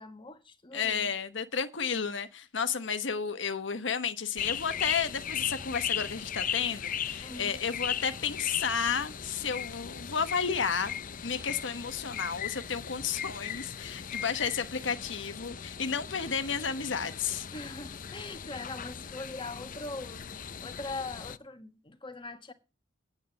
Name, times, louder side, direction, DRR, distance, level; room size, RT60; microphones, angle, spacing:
voice 1, 0.0-1.1 7.2-7.6 17.4-22.5, left 2 dB, 25° left, 1.6 m, -42 dB
voice 2, 0.7-17.5, left 6 dB, 85° left, 1.1 m, -32 dB
sound 1, 4.4-21.4, left 8 dB, 45° left, 0.6 m, -38 dB
9.3 x 7.0 x 7.9 m
head